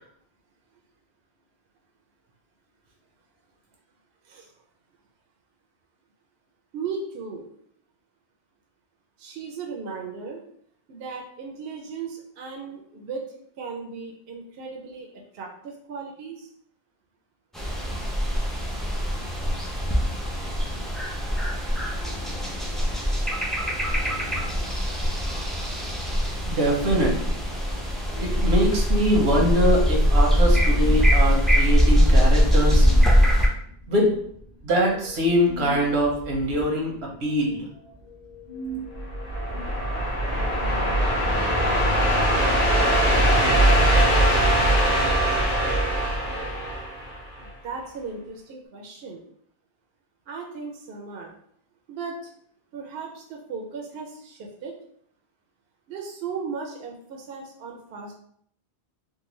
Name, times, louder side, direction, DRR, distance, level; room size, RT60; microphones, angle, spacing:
voice 1, 6.7-7.4 9.2-10.4 10.9-15.1 15.3-16.5 47.4-49.2 50.3-51.3 51.9-52.3 52.7-54.7 55.9-58.1, right 5 dB, 70° right, 0 dB, 0.8 m, -36 dB
sound 1, 17.5-33.5, equal, ahead, 0.3 m, -22 dB
voice 2, 26.5-27.4 28.2-32.9 33.9-34.1 34.6-37.7, equal, 90° right, 0 dB, 1.1 m, -23 dB
sound 2, 27.8-39.7, equal, 75° left, 1.1 m, -41 dB
sound 3, 39.0-47.4, right 1 dB, 40° left, 0.9 m, -21 dB
3.7 x 2.2 x 3.0 m, 0.66 s
omnidirectional pair, 1.1 m